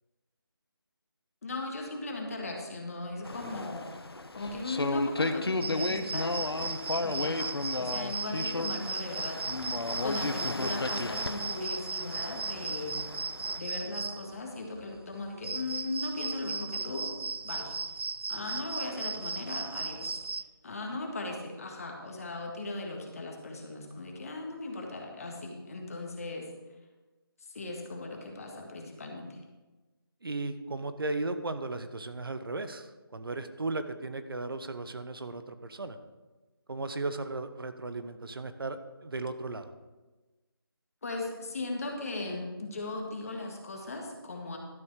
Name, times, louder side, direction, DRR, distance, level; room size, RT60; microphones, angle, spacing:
voice 1, 1.4-4.0 4.3-6.4 7.0-13.0 13.6-17.7 18.3-20.2 20.6-26.5 27.4-29.4 41.0-44.6, left 2 dB, 35° left, 1 dB, 1.8 m, -38 dB
sound 1, 3.2-13.6, left 2 dB, 80° left, 1.0 m, -34 dB
sound 2, 5.6-20.4, right 4 dB, 85° right, 0.5 m, -37 dB
voice 2, 30.2-36.0 36.7-39.7, right 2 dB, 65° right, 10 dB, 1.0 m, -36 dB
12.5 x 7.1 x 4.9 m, 1.2 s
figure-of-eight pair, 170°, 13 cm